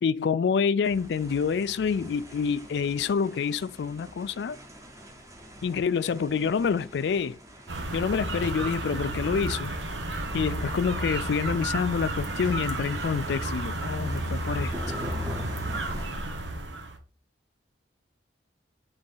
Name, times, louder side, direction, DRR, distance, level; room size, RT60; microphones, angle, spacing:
voice 1, 0.0-4.6 5.6-7.4 7.9-9.7 10.3-14.7, left 6 dB, 70° left, 0.3 m, -27 dB
sound 1, 0.8-16.1, equal, 15° right, 0.9 m, -45 dB
sound 2, 7.7-17.0, right 2 dB, 90° right, 1.1 m, -32 dB
4.9 x 3.8 x 5.6 m
head